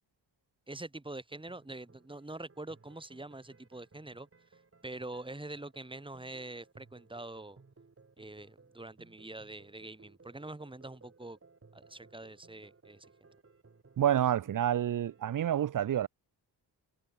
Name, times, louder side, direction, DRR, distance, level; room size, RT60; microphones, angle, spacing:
voice 1, 0.7-7.6 8.2-11.4 11.7-13.1, right 2 dB, 10° right, 3.3 m, -45 dB
sound 1, 1.3-15.5, right 4 dB, 30° right, 6.9 m, -61 dB
voice 2, 14.0-16.1, right 10 dB, 50° right, 0.6 m, -28 dB
cardioid pair, 90°, 43 cm